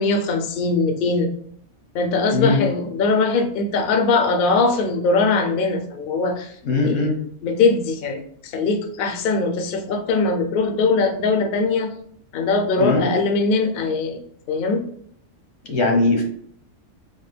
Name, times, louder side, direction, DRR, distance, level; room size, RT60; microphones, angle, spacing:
voice 1, 0.0-1.3 1.9-6.5 6.8-7.0 7.4-11.9 12.3-14.2 14.5-14.8, left 3 dB, 60° left, 5 dB, 0.6 m, -21 dB
voice 2, 2.3-2.6 6.6-7.2 12.8-13.1 15.7-16.2, left 3 dB, 85° left, 1 dB, 1.3 m, -19 dB
3.9 x 2.1 x 3.3 m, 0.63 s
omnidirectional pair, 1.3 m